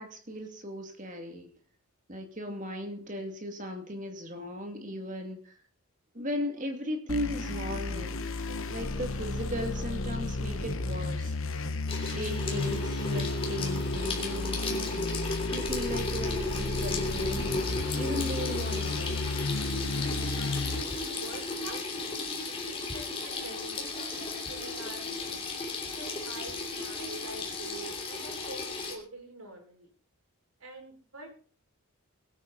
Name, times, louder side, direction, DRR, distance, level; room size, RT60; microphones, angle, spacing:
voice 1, 0.0-1.5 2.1-5.5 6.1-8.2 8.7-11.4 12.0-15.2 15.5-19.2, equal, 35° right, 4 dB, 2.5 m, -37 dB
sound 1, 7.1-20.8, left 3 dB, 70° left, 1.3 m, -33 dB
voice 2, 8.5-8.9 20.0-21.8 22.5-25.4 25.9-29.9 30.6-31.3, right 2 dB, 75° right, 1 dB, 5.8 m, -46 dB
Water tap faucet / Sink (filling or washing), 11.9-29.0, left 3 dB, 25° left, 3.0 m, -35 dB
21.5 x 9.3 x 4.2 m, 0.42 s
head